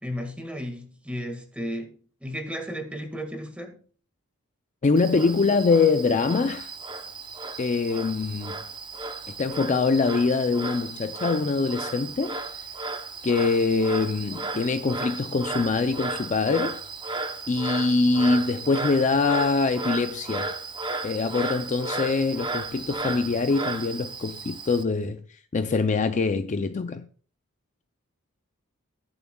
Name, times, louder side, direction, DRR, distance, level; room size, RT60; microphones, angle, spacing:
voice 1, 0.0-1.9 2.2-3.8, equal, 5° right, 1.8 m, -34 dB
voice 2, 4.8-6.7 7.6-8.6 9.3-12.4 13.2-16.8 17.5-20.5 21.0-27.1, left 4 dB, 35° left, 0.4 m, -24 dB
Frog, 5.0-24.8, right 3 dB, 20° right, 0.7 m, -34 dB
20.5 x 7.0 x 2.3 m
head